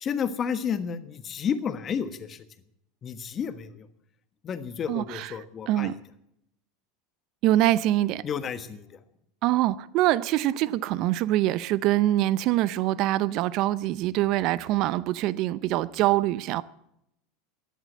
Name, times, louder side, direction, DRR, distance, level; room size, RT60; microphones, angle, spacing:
voice 1, 0.0-2.4 3.0-3.9 4.4-5.9 8.2-8.9, left 7 dB, 35° left, 1.4 m, -31 dB
voice 2, 4.9-5.3 5.7-6.0 7.4-8.2 9.4-16.6, right 15 dB, 55° right, 0.6 m, -24 dB
14.0 x 11.0 x 7.6 m
hypercardioid pair, 85°, 0 cm